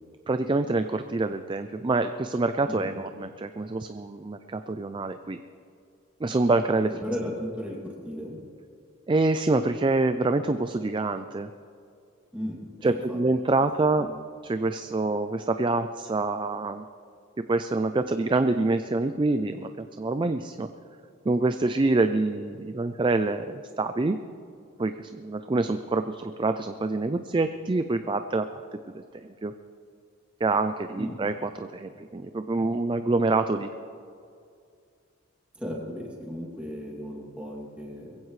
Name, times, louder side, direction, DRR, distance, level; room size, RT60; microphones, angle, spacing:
voice 1, 0.3-5.4 6.2-6.9 9.1-11.5 12.8-14.1 14.4-16.8 17.5-20.7 21.3-24.2 24.8-28.6 29.4-29.5 30.4-33.7, right 2 dB, 25° right, 9 dB, 0.4 m, -26 dB
voice 2, 6.9-8.4 12.3-13.2 13.4-13.7 14.0-14.2 31.0-31.2 35.5-38.1, equal, 5° right, -3 dB, 2.6 m, -36 dB
21.5 x 15.5 x 3.2 m, 2.4 s
head